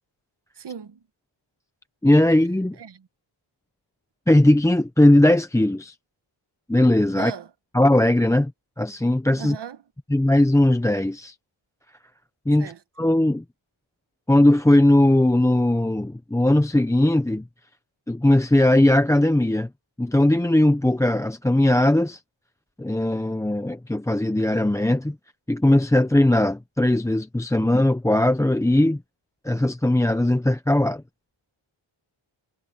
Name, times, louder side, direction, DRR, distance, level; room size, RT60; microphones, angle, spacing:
voice 1, 0.6-1.0 2.7-3.1 7.1-7.5 9.4-9.8 12.6-12.8 27.6-27.7, right 7 dB, 55° right, 1.3 m, -37 dB
voice 2, 2.0-2.8 4.3-5.9 6.7-7.3 7.7-8.5 8.8-9.6 10.1-11.3 12.5-12.7 13.0-13.4 14.3-17.4 18.1-19.7 20.0-22.2 22.8-25.2 25.5-29.0 29.4-31.0, left 1 dB, 5° left, 0.6 m, -19 dB
wide cardioid pair, 115°, 49 cm